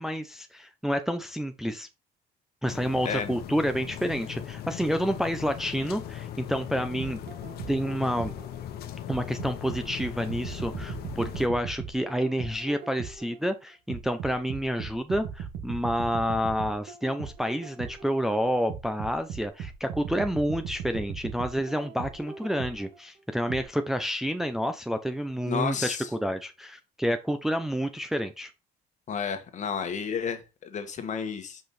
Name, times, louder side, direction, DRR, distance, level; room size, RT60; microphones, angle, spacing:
voice 1, 0.0-1.9 2.6-7.3 7.7-8.3 9.1-28.5, equal, ahead, 0.6 m, -29 dB
sound 1, 2.7-11.5, left 10 dB, 70° left, 1.1 m, -39 dB
sound 2, 7.0-8.6 9.1-13.4 13.9-18.2 18.7-23.0 23.5-23.6, right 7 dB, 70° right, 1.6 m, -38 dB
voice 2, 25.4-26.1 29.1-31.6, left 6 dB, 45° left, 1.5 m, -31 dB
5.9 x 5.2 x 4.2 m
cardioid pair, 110°, 17 cm